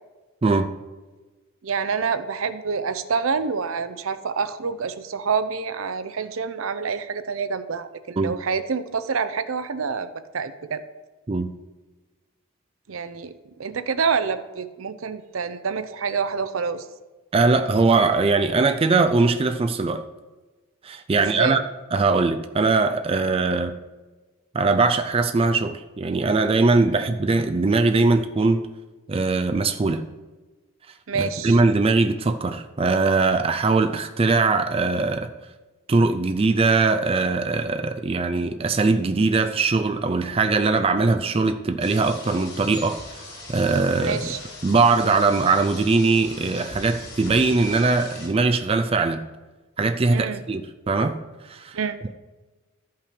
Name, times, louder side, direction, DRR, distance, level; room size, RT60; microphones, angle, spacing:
voice 1, 0.4-0.7 8.2-8.3 11.3-11.5 17.3-20.1 20.8-21.6 21.9-23.7 24.5-28.7 29.1-30.0 31.1-35.3 35.9-43.0 43.5-44.3 44.6-49.3 49.8-50.6 50.9-51.2 51.4-51.8, right 3 dB, 25° right, 8 dB, 0.4 m, -21 dB
voice 2, 1.6-10.8 12.9-16.8 21.1-21.6 31.1-31.6 44.0-44.4 50.1-50.4 51.7-52.0, right 5 dB, 75° right, 11 dB, 0.6 m, -27 dB
sound 1, 41.8-48.3, left 2 dB, 50° left, 3.4 m, -40 dB
12.5 x 5.6 x 5.1 m, 1.2 s
head